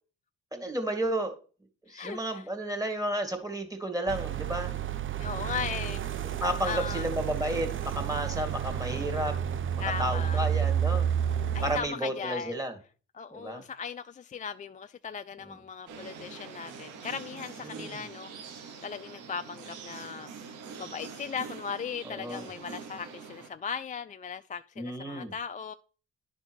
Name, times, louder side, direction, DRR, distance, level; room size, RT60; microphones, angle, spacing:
voice 1, 0.5-1.4 1.9-4.7 6.4-9.3 10.0-11.1 11.6-12.7 13.3-13.6 17.7-18.0 22.1-22.4 24.8-25.3, right 1 dB, 10° right, 2.1 m, -32 dB
voice 2, 1.9-2.4 5.2-6.0 6.6-7.0 9.8-10.5 11.5-12.6 13.1-18.3 18.6-20.3 20.8-25.7, left 6 dB, 25° left, 0.4 m, -38 dB
sound 1, 4.1-11.8, right 9 dB, 40° right, 0.6 m, -30 dB
sound 2, 15.9-23.5, right 5 dB, 85° right, 1.4 m, -44 dB
10.5 x 3.6 x 6.1 m
cardioid pair, 90°, 30 cm